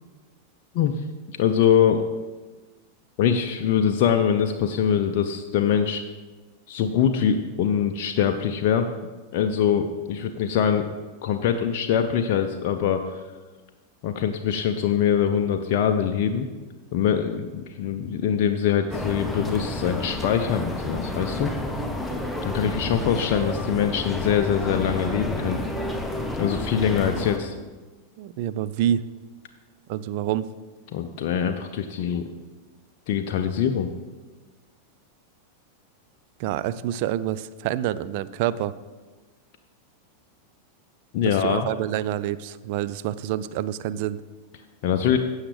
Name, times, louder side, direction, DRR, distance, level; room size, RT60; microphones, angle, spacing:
voice 1, 1.3-2.1 3.2-6.0 6.7-8.9 9.3-10.9 11.2-13.2 14.0-16.5 16.9-21.5 22.4-25.6 26.4-27.6 30.9-32.3 33.1-33.9 41.1-41.7 44.8-45.2, left 8 dB, 45° left, 5 dB, 0.5 m, -23 dB
sound 1, 18.9-27.4, left 1 dB, 5° left, 1.0 m, -30 dB
voice 2, 28.2-29.1 29.9-30.5 36.4-38.7 41.2-44.2, right 11 dB, 45° right, 16 dB, 0.4 m, -27 dB
15.5 x 6.5 x 3.3 m, 1.3 s
figure-of-eight pair, 90°, 0 cm